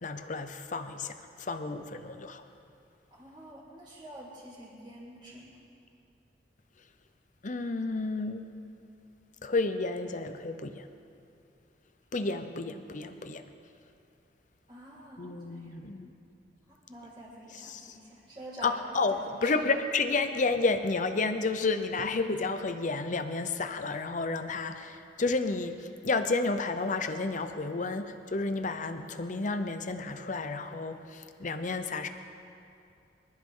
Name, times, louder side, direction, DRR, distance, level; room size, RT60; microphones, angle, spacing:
voice 1, 0.0-2.4 7.4-8.5 9.4-10.9 12.1-13.4 15.2-16.1 17.5-18.0 18.6-32.1, left 3 dB, 45° left, 8 dB, 0.7 m, -31 dB
voice 2, 3.1-5.6 12.2-12.3 14.7-15.8 16.7-18.7 19.1-19.5, right 1 dB, 25° right, -14 dB, 4.5 m, -48 dB
25.5 x 13.5 x 3.9 m, 2.6 s
head